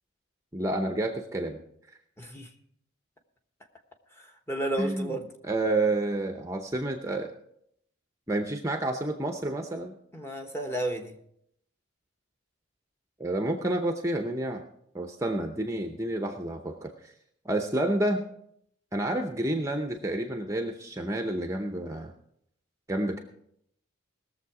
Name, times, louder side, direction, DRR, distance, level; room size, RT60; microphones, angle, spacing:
voice 1, 0.5-1.6 4.8-5.2 5.4-7.3 8.3-9.9 13.2-14.6 14.9-17.1 17.4-18.2 18.9-22.1 22.9-23.2, right 1 dB, 15° right, 5 dB, 0.7 m, -29 dB
voice 2, 2.2-2.5 4.2-5.3 10.1-11.1, right 1 dB, 10° left, 4 dB, 1.1 m, -32 dB
19.5 x 7.1 x 4.8 m, 0.72 s
head